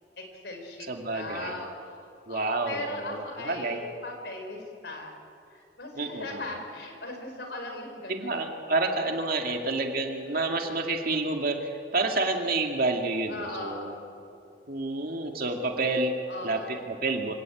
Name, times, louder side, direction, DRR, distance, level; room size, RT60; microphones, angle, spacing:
voice 1, 0.2-5.2 5.5-8.4 13.3-14.0 16.3-17.0, left 2 dB, 65° left, 4 dB, 4.8 m, -39 dB
voice 2, 0.9-1.6 2.3-3.8 6.0-6.4 8.1-11.6 11.9-13.9 14.7-16.1 16.4-17.3, right 2 dB, 55° right, 3 dB, 2.3 m, -29 dB
25.5 x 17.0 x 8.6 m, 2.6 s
head